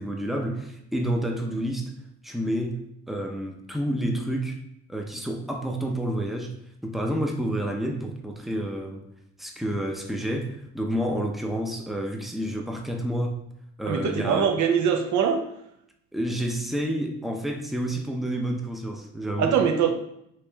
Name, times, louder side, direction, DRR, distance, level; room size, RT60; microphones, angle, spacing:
voice 1, 0.0-1.9 2.2-2.8 3.1-4.6 4.9-6.5 6.8-9.0 9.4-13.4 13.8-14.5 16.1-19.6, right 1 dB, ahead, 0.5 m, -29 dB
voice 2, 13.9-15.4 19.4-19.9, right 7 dB, 70° right, 0.6 m, -22 dB
3.1 x 3.0 x 3.4 m
cardioid pair, 90°, 30 cm